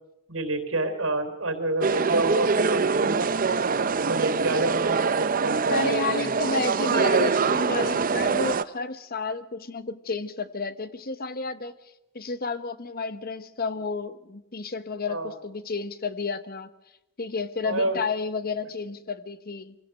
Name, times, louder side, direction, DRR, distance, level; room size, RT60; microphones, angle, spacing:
voice 1, 0.3-3.3 4.1-6.4 15.1-15.3 17.6-18.0, right 2 dB, 75° right, 8 dB, 3.6 m, -28 dB
sound 1, 1.8-8.6, right 4 dB, 40° right, 0.7 m, -24 dB
voice 2, 5.7-11.7 12.1-16.7 17.2-19.8, left 3 dB, 45° left, 12 dB, 1.1 m, -31 dB
25.0 x 17.5 x 6.6 m, 0.89 s
head